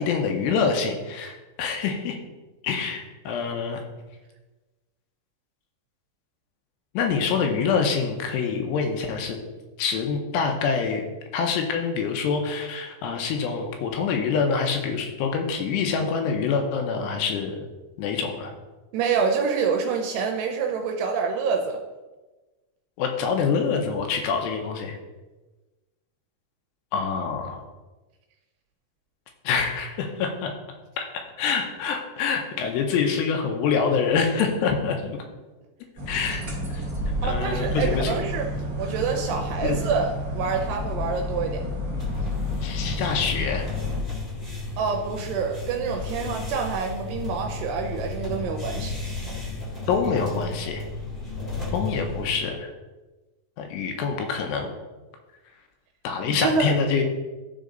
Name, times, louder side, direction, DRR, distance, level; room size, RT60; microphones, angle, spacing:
voice 1, 0.0-2.2 2.6-3.8 6.9-9.4 9.8-11.0 11.3-17.6 18.0-18.5 23.0-25.0 26.9-27.6 29.4-30.5 31.0-35.2 36.1-36.8 37.2-38.3 39.6-39.8 42.6-43.7 49.9-50.8 51.7-52.7 53.6-54.7 56.0-57.0, left 5 dB, 80° left, 3 dB, 2.9 m, -26 dB
voice 2, 18.9-21.8 37.2-38.5 38.8-41.6 44.8-48.9 56.3-56.7, right 5 dB, 80° right, 2 dB, 2.6 m, -27 dB
sound 1, 36.0-44.0, left 1 dB, 35° right, 1.5 m, -30 dB
sound 2, 42.0-52.4, left 3 dB, 20° left, 1.2 m, -33 dB
12.0 x 4.0 x 3.9 m, 1.2 s
omnidirectional pair, 4.9 m